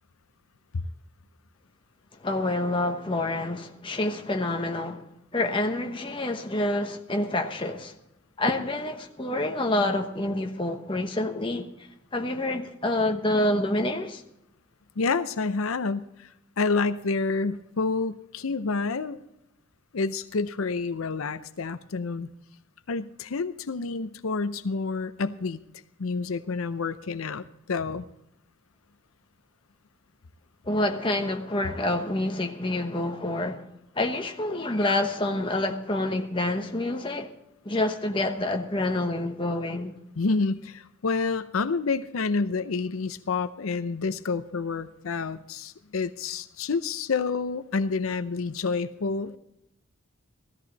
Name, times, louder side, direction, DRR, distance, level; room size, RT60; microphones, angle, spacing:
voice 1, 2.2-5.0 5.3-7.9 8.4-11.7 12.1-14.2 30.7-33.7 34.0-37.3 37.6-39.9, left 1 dB, 25° left, 1.1 m, -27 dB
voice 2, 15.0-19.2 19.9-22.3 22.9-25.6 26.0-28.1 40.2-49.4, left 4 dB, 80° left, 0.6 m, -28 dB
16.0 x 13.5 x 4.0 m
head